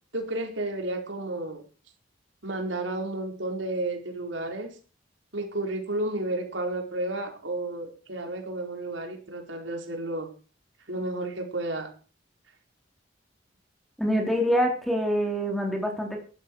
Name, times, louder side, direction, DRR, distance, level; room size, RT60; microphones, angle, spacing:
voice 1, 0.1-1.6 2.4-4.8 5.3-10.3 10.9-11.9, right 2 dB, 75° right, 3 dB, 4.8 m, -32 dB
voice 2, 14.0-16.2, equal, ahead, 1 dB, 3.7 m, -25 dB
16.5 x 12.5 x 4.7 m, 0.38 s
head